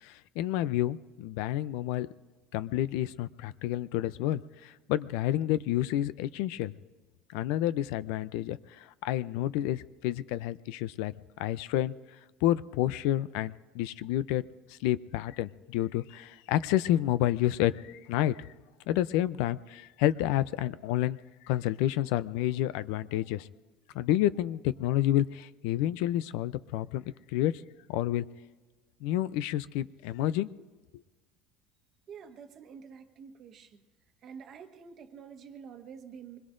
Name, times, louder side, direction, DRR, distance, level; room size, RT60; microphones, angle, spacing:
voice 1, 0.0-2.1 2.5-6.7 7.3-11.9 12.4-14.5 14.8-18.5 18.9-21.2 21.5-23.5 23.9-27.0 27.3-27.5 27.9-28.3 29.0-30.5, left 13 dB, 75° left, 16 dB, 0.5 m, -29 dB
voice 2, 32.1-33.8 34.2-36.4, right 6 dB, 40° right, 7 dB, 1.2 m, -48 dB
25.0 x 21.5 x 2.6 m, 1.3 s
cardioid pair, 145°, 0 cm